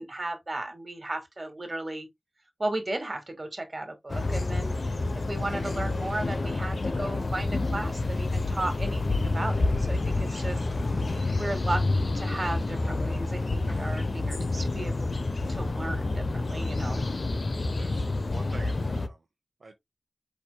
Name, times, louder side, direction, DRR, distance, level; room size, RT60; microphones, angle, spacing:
voice 1, 0.0-2.1 2.6-4.8 5.3-10.6 11.4-17.1, right 2 dB, 40° right, 1.8 m, -35 dB
sound 1, 4.1-19.1, left 2 dB, 60° left, 0.7 m, -28 dB
voice 2, 17.8-19.3 19.6-19.7, right 3 dB, 70° right, 0.8 m, -46 dB
5.1 x 4.3 x 2.2 m
wide cardioid pair, 70°, 0 cm